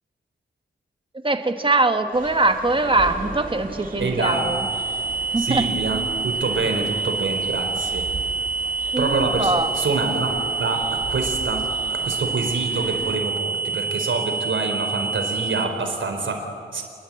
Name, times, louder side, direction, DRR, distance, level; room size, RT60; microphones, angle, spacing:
voice 1, 1.2-4.7 5.3-5.7 6.7-6.8 8.9-9.7, right 2 dB, 25° right, 7 dB, 1.7 m, -22 dB
sound 1, 2.1-13.2, right 3 dB, 45° right, 3.6 m, -38 dB
voice 2, 4.0-4.6 5.4-8.1 9.0-16.8, right 3 dB, 80° right, 5 dB, 4.1 m, -26 dB
sound 2, 4.2-15.6, right 4 dB, 30° left, 3.4 m, -27 dB
27.0 x 21.5 x 8.8 m, 2.3 s
wide cardioid pair, 110°, 20 cm